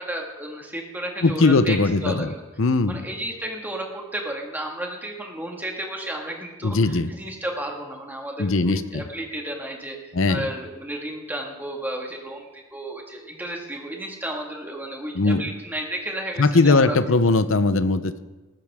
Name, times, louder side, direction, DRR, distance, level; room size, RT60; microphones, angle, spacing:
voice 1, 0.0-1.8 2.0-2.4 2.9-17.0, right 1 dB, 10° right, 1 dB, 1.8 m, -33 dB
voice 2, 1.2-2.3 2.6-3.0 6.6-7.1 8.4-9.0 10.1-10.5 15.1-15.4 16.4-18.2, left 3 dB, 65° left, 12 dB, 0.7 m, -20 dB
19.5 x 14.5 x 3.6 m, 1.2 s
head